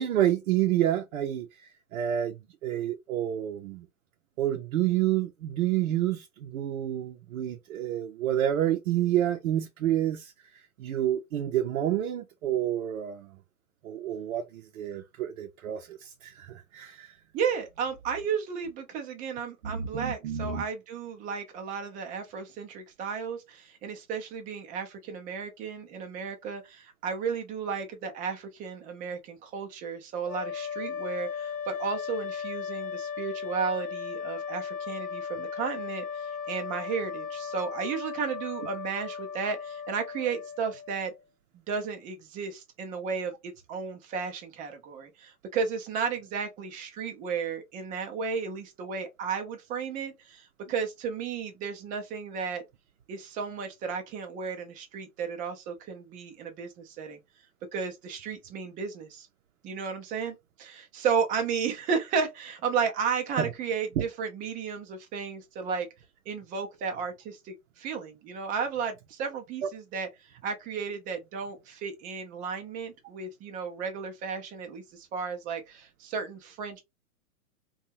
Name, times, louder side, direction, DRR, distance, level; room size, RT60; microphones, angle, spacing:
voice 1, 0.0-2.4 2.6-3.9 4.4-10.3 10.8-13.3 13.8-17.1 19.7-20.6 63.4-63.5 69.6-69.7, right 11 dB, 65° right, 0.6 m, -29 dB
voice 2, 17.3-41.1 41.5-52.6 53.1-57.2 57.7-59.3 59.6-65.9 66.3-76.8, right 6 dB, 20° right, 0.5 m, -33 dB
sound 1, 30.2-41.2, left 6 dB, 45° left, 1.1 m, -36 dB
2.6 x 2.3 x 2.8 m
hypercardioid pair, 120°, 42 cm